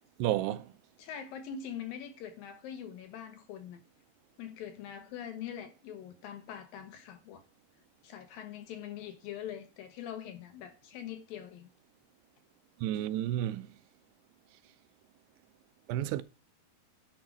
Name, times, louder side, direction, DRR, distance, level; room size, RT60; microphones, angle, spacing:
voice 1, 0.2-0.7 12.8-13.7 15.9-16.2, right 13 dB, 80° right, 2.6 m, -31 dB
voice 2, 1.0-3.8 4.4-7.4 8.0-11.7, left 9 dB, 65° left, 2.7 m, -43 dB
10.5 x 4.6 x 7.4 m
omnidirectional pair, 4.8 m